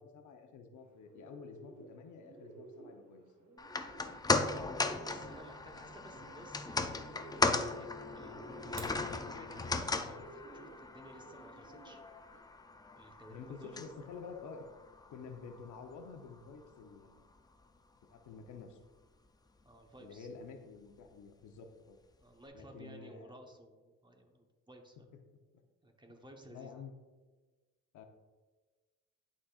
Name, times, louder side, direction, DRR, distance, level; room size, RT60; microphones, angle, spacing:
voice 1, 0.0-3.2 13.3-14.6 15.1-17.3 18.1-18.8 20.0-22.0 22.5-23.3 25.1-25.4 26.5-26.9 27.9-28.1, left 5 dB, 75° left, 5 dB, 0.9 m, -50 dB
Bird, 0.8-12.4, right 3 dB, 70° right, 1.4 m, -55 dB
sound 1, 3.6-16.0 16.3-16.4, left 3 dB, 15° left, 0.4 m, -37 dB
voice 2, 5.0-8.8 9.1-12.0 13.0-14.1 19.6-20.3 22.2-25.1 25.8-26.8, right 1 dB, 15° right, 3 dB, 1.0 m, -55 dB
sound 2, 8.5-9.1, right 3 dB, 45° right, 1.5 m, -48 dB
11.5 x 4.2 x 2.4 m, 1.3 s
cardioid pair, 90°, 30 cm